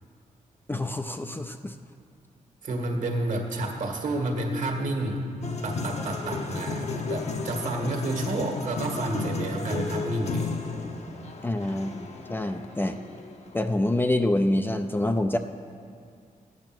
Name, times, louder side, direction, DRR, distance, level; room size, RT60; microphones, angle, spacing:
voice 1, 0.7-1.7 11.4-13.0 13.5-15.4, left 1 dB, 15° left, 6 dB, 0.4 m, -26 dB
voice 2, 2.6-5.3 5.6-10.5, right 2 dB, 65° right, 2 dB, 1.7 m, -30 dB
sound 1, 5.4-13.5, left 4 dB, 50° left, 1.0 m, -33 dB
12.0 x 8.9 x 6.0 m, 2.2 s
wide cardioid pair, 115°, 14 cm